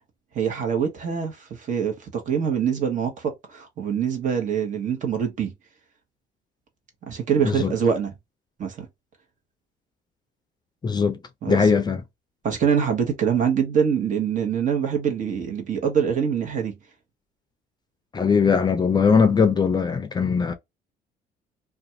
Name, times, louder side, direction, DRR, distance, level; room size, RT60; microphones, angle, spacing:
voice 1, 0.3-5.5 7.1-8.1 8.6-8.9 11.4-11.7 12.4-16.8, right 7 dB, 50° right, 1.0 m, -24 dB
voice 2, 10.8-11.2 11.5-12.0 18.1-20.5, left 5 dB, 25° left, 0.4 m, -20 dB
2.5 x 2.3 x 2.7 m
cardioid pair, 110°, 17 cm